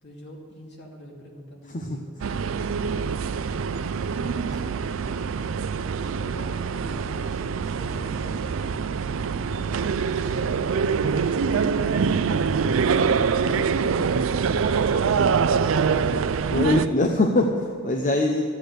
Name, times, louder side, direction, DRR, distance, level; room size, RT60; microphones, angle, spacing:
voice 1, 0.0-2.1 4.0-4.8 5.9-9.4 9.8-15.8, equal, 60° left, -1 dB, 2.5 m, -43 dB
sound 1, 2.2-16.9, right 5 dB, 85° right, 0.4 m, -24 dB
voice 2, 16.5-18.4, left 2 dB, 40° left, 3 dB, 0.7 m, -22 dB
13.0 x 8.3 x 6.6 m, 2.3 s
head